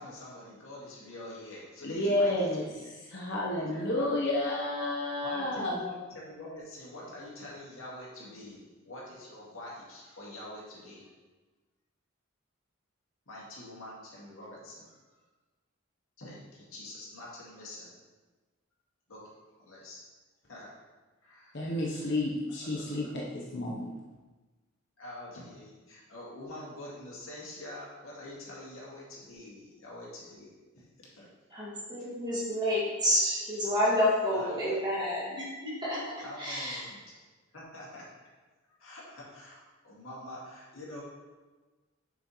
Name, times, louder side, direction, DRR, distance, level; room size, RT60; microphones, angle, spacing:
voice 1, 0.0-2.7 3.5-4.3 5.2-11.1 13.3-15.0 16.2-17.9 19.1-19.2 19.6-20.0 20.5-20.7 21.2-22.1 22.6-23.1 25.0-30.5 30.8-31.6 34.3-34.8 36.2-37.2 37.5-38.1 38.8-41.0, left 1 dB, 85° left, -5 dB, 2.1 m, -45 dB
voice 2, 1.8-2.6 3.0-5.8 21.5-23.9, left 1 dB, 60° left, -4 dB, 1.0 m, -30 dB
voice 3, 31.5-36.0 36.4-36.9, left 1 dB, 20° right, -7 dB, 2.1 m, -29 dB
7.0 x 6.1 x 3.1 m, 1.3 s
head